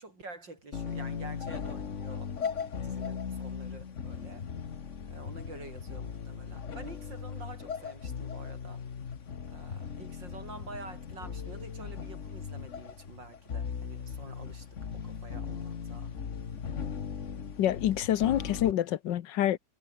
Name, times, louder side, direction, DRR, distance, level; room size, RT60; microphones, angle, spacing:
voice 1, 0.0-4.5 5.1-8.8 9.5-14.7 14.9-16.2, right 3 dB, 80° right, 6.4 m, -48 dB
sound 1, 0.7-18.7, left 6 dB, 45° left, 1.6 m, -38 dB
voice 2, 17.6-19.6, left 12 dB, 80° left, 1.6 m, -27 dB
omnidirectional pair, 1.9 m